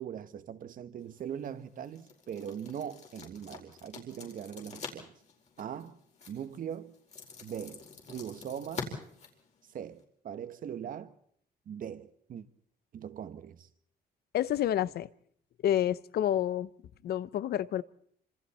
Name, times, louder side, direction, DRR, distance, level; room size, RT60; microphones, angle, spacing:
voice 1, 0.0-5.1 5.6-6.0 6.3-6.9 7.4-9.0 9.7-11.1 11.7-12.5 12.9-13.7, right 9 dB, 60° right, 1.4 m, -41 dB
sound 1, 1.0-10.0, left 5 dB, 45° left, 4.8 m, -47 dB
voice 2, 14.3-15.1 15.6-16.7 17.0-17.8, left 11 dB, 75° left, 0.8 m, -29 dB
28.0 x 26.5 x 4.4 m
wide cardioid pair, 165°, 16 cm